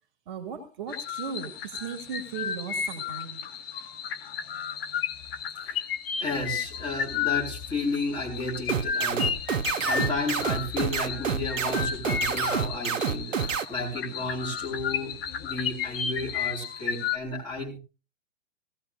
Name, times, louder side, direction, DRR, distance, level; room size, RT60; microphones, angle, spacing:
voice 1, 0.3-3.4, right 7 dB, 40° right, 6 dB, 2.2 m, -37 dB
sound 1, 0.9-17.2, left 8 dB, 50° left, 1.4 m, -33 dB
voice 2, 6.2-9.3 9.8-15.1 15.4-17.8, left 2 dB, 10° left, -1 dB, 4.5 m, -32 dB
sound 2, 8.7-13.6, right 6 dB, 75° right, 1.0 m, -27 dB
17.5 x 16.5 x 2.5 m, 0.30 s
figure-of-eight pair, 125°, 39 cm